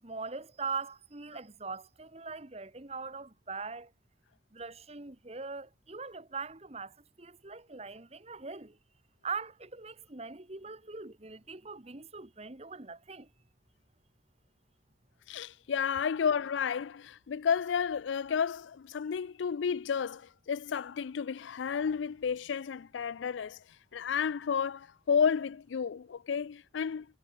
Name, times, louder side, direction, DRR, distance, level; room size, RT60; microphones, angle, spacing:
voice 1, 0.0-3.9 4.5-8.8 9.2-13.3, right 4 dB, 35° right, 1.4 m, -41 dB
voice 2, 15.3-23.6 23.9-27.1, left 7 dB, 85° left, 0.4 m, -31 dB
head